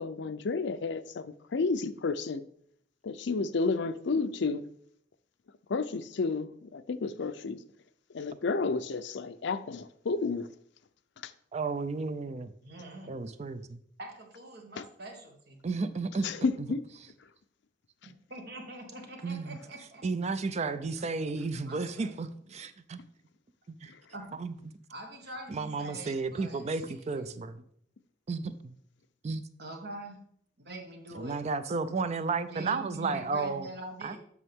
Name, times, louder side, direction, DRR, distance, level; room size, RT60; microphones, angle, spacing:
voice 1, 0.0-2.4 3.0-4.7 5.7-7.6 8.1-10.5 11.2-11.3 14.8-14.9 16.2-16.9 23.9-24.0, left 4 dB, 65° left, 0.5 m, -31 dB
voice 2, 11.5-12.5 13.1-13.8 15.6-16.3 16.6-16.7 19.2-19.6 20.0-23.1 23.7-23.9 24.4-24.7 25.5-27.6 28.3-28.7 29.2-29.4 31.1-33.7 34.0-34.2, right 4 dB, 35° right, 0.4 m, -33 dB
voice 3, 12.6-13.1 14.0-15.6 18.0-20.0 21.5-22.1 24.1-24.4 24.9-27.4 29.6-30.2 30.6-31.4 32.5-34.2, right 1 dB, 60° right, 1.5 m, -44 dB
8.3 x 6.1 x 3.6 m
head